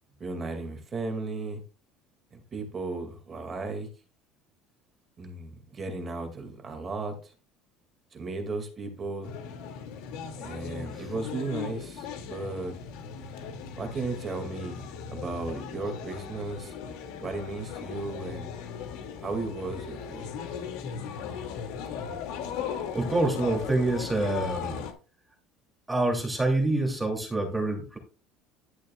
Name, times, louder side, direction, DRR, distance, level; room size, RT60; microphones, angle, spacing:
voice 1, 0.2-1.6 2.3-3.9 5.2-7.3 8.1-9.3 10.4-12.8 13.8-14.8 15.1-16.7 17.2-18.5 19.2-20.6, right 3 dB, 25° right, 2.1 m, -35 dB
sound 1, 9.2-24.9, left 7 dB, 75° left, 2.2 m, -38 dB
voice 2, 22.9-24.8 25.9-28.0, right 2 dB, 5° right, 2.6 m, -26 dB
11.5 x 10.5 x 2.3 m
cardioid pair, 160°, 0 cm